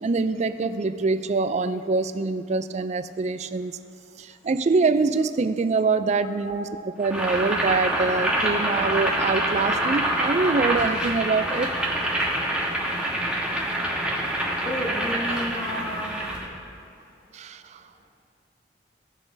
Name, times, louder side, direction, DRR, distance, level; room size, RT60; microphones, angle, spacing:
voice 1, 0.0-3.7 4.2-6.6 7.0-11.7 17.3-17.6, right 4 dB, 40° right, 11 dB, 0.4 m, -24 dB
Boiling, 7.0-16.5, right 1 dB, 5° right, 1.3 m, -26 dB
voice 2, 14.6-16.1, equal, 40° left, -8 dB, 1.6 m, -31 dB
17.5 x 6.8 x 2.7 m, 2.4 s
head